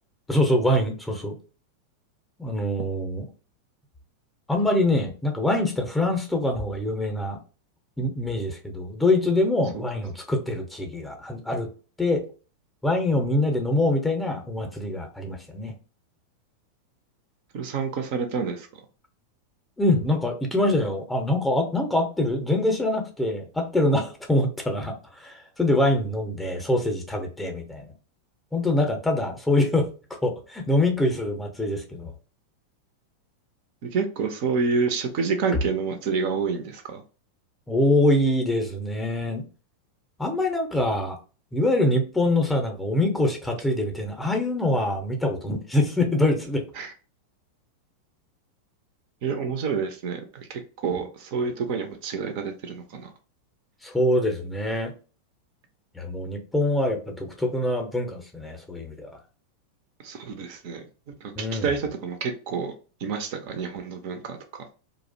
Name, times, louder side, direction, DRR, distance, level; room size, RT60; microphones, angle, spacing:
voice 1, 0.3-1.3 2.4-3.3 4.5-7.4 8.0-11.7 12.0-12.2 12.8-15.7 19.8-27.9 28.5-29.9 30.2-32.1 37.7-39.4 40.2-41.2 41.5-46.6 53.8-54.9 55.9-59.1 61.4-61.7, left 1 dB, 5° left, 3 dB, 0.6 m, -24 dB
voice 2, 17.5-18.7 33.9-37.0 46.8-46.9 49.2-53.1 60.0-60.8 61.2-62.7 63.0-64.4, right 5 dB, 45° right, 6 dB, 0.4 m, -28 dB
2.5 x 2.0 x 2.5 m, 0.35 s
figure-of-eight pair, 90°, 0 cm